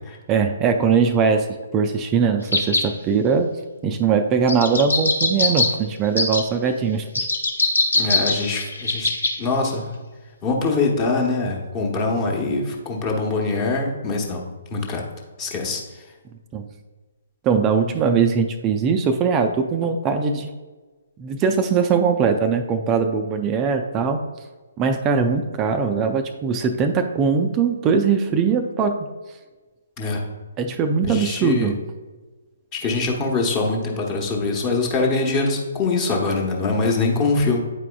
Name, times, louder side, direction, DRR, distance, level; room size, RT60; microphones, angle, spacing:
voice 1, 0.3-1.5 1.7-3.5 3.8-7.3 16.5-16.7 17.4-20.5 21.2-24.2 24.8-29.1 30.6-31.8, right 5 dB, 20° right, 7 dB, 0.4 m, -21 dB
sound 1, 2.5-2.9 4.5-5.7 6.2-6.4 7.2-9.3 9.6-9.7, left 3 dB, 75° left, 1.0 m, -21 dB
voice 2, 7.9-9.1 9.4-9.9 10.4-14.4 14.7-15.1 15.4-15.8 30.0-30.2 31.1-31.7 32.7-37.6, left 3 dB, 25° left, 0 dB, 1.0 m, -23 dB
8.9 x 4.7 x 2.3 m, 1.3 s
figure-of-eight pair, 130°, 0 cm